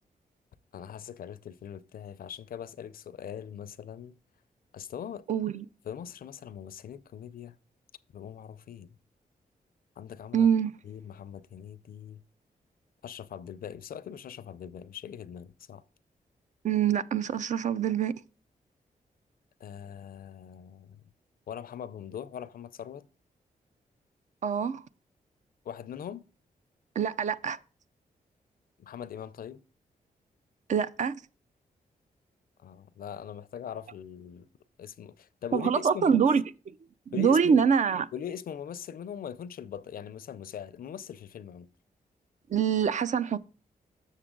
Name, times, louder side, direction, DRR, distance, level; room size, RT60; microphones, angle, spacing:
voice 1, 0.7-4.2 4.7-5.3 5.8-7.6 8.1-8.9 10.0-10.5 10.8-12.2 13.0-15.8 19.6-21.0 21.5-23.1 25.6-26.2 28.8-29.6 32.6-34.5 34.8-36.2 37.1-37.7 38.1-41.7, left 9 dB, 70° left, 0.5 m, -41 dB
voice 2, 5.3-5.6 10.3-10.7 16.6-18.1 24.4-24.8 27.0-27.6 30.7-31.2 35.5-36.4 37.1-38.1 42.5-43.4, right 7 dB, 50° right, 0.4 m, -25 dB
7.2 x 6.6 x 3.8 m
cardioid pair, 95°, 15 cm